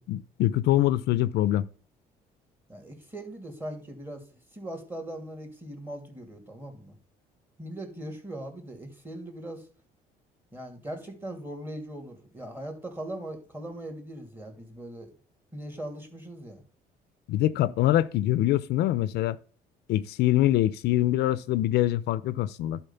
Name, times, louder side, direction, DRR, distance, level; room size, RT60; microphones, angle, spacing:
voice 1, 0.1-1.7 17.3-19.4 19.9-22.8, left 14 dB, 80° left, 0.5 m, -24 dB
voice 2, 2.7-7.0 7.6-9.6 10.5-15.1 15.5-16.6, right 1 dB, 10° right, 2.5 m, -40 dB
11.5 x 4.5 x 5.6 m
cardioid pair, 110°, 17 cm